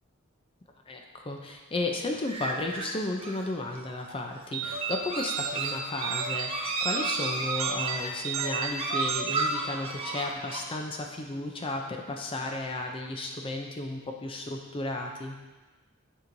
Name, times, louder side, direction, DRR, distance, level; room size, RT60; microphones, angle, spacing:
voice 1, 0.9-15.4, left 2 dB, 25° left, 2 dB, 0.5 m, -34 dB
sound 1, 2.3-10.6, right 3 dB, 30° right, 0.6 m, -34 dB
sound 2, 2.6-3.1 5.0-5.6 7.4-8.0 9.9-10.4, left 2 dB, 60° left, 0.9 m, -53 dB
sound 3, 4.5-10.3, right 6 dB, 80° right, 0.5 m, -34 dB
9.8 x 4.5 x 2.6 m, 1.2 s
head